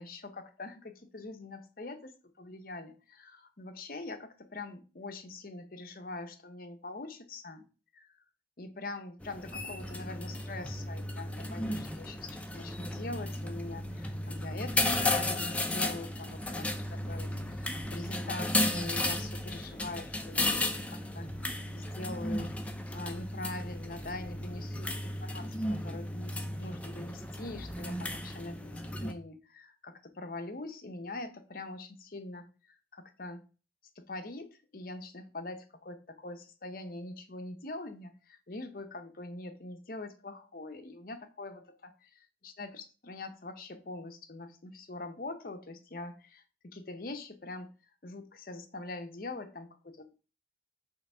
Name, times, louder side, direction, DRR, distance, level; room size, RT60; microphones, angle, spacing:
voice 1, 0.0-7.7 7.9-8.1 8.6-21.3 21.7-22.5 22.9-33.4 34.0-41.9 42.4-47.7 48.0-50.1, left 2 dB, 50° left, 7 dB, 0.8 m, -43 dB
sound 1, 9.2-29.1, left 1 dB, 5° left, 0.5 m, -34 dB
5.6 x 3.6 x 5.5 m, 0.34 s
head